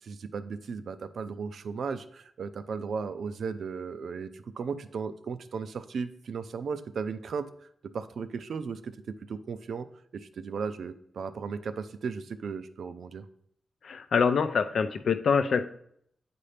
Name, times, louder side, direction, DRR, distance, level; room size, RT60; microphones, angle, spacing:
voice 1, 0.0-7.5 7.9-9.9 10.1-13.3, right 5 dB, 75° right, 11 dB, 0.4 m, -36 dB
voice 2, 13.8-15.6, left 5 dB, 70° left, 10 dB, 0.5 m, -25 dB
8.5 x 4.2 x 3.3 m, 0.68 s
wide cardioid pair, 105°, 0 cm